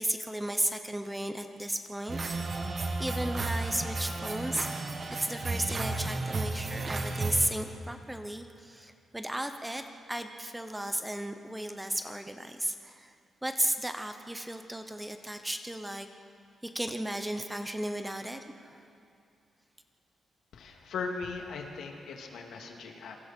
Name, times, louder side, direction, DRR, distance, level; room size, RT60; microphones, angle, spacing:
voice 1, 0.0-2.2 3.0-4.9 5.2-13.1 13.4-16.1 16.6-18.9, right 1 dB, 5° right, 7 dB, 0.8 m, -34 dB
sound 1, 2.1-7.5, right 3 dB, 30° right, 1.7 m, -33 dB
voice 2, 20.5-23.2, left 4 dB, 80° left, 2 dB, 2.5 m, -38 dB
27.0 x 23.5 x 4.5 m, 2.5 s
wide cardioid pair, 170°, 0 cm